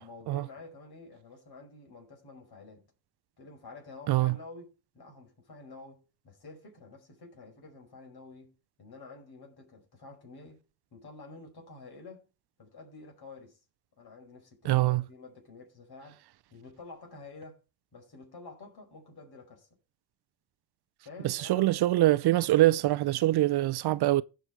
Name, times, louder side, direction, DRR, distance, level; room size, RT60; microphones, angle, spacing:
voice 1, 0.0-2.8 3.4-10.6 10.9-12.3 12.6-13.6 14.0-16.2 16.5-17.6 17.9-19.7 21.0-21.8, left 3 dB, 60° left, 5.0 m, -49 dB
voice 2, 14.7-15.0 21.2-24.2, right 16 dB, 60° right, 0.6 m, -24 dB
15.5 x 5.3 x 4.6 m
supercardioid pair, 60°, 44 cm